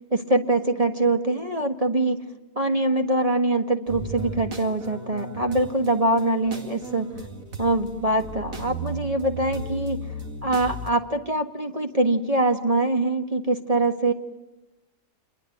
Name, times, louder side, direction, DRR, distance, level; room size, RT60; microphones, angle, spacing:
voice 1, 0.1-2.2 2.6-7.1 7.6-10.0 10.4-14.1, right 2 dB, 25° right, 5 dB, 1.7 m, -23 dB
sound 1, 3.9-10.9, right 2 dB, 85° right, 3.1 m, -36 dB
28.0 x 22.5 x 9.3 m, 1.0 s
omnidirectional pair, 1.4 m